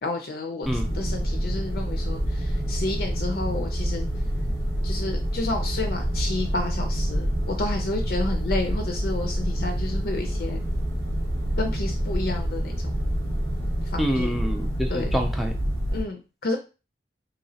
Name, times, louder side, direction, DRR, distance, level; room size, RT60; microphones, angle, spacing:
voice 1, 0.0-0.7 0.9-4.1 4.8-10.6 11.6-12.7 13.9-14.4 14.9-15.1 15.9-16.6, left 2 dB, 55° left, 4 dB, 0.4 m, -30 dB
sound 1, 0.6-16.0, equal, 70° right, 1.0 m, -27 dB
voice 2, 0.7-1.0 14.0-15.5, equal, ahead, 3 dB, 0.3 m, -27 dB
2.9 x 2.8 x 2.7 m, 0.31 s
head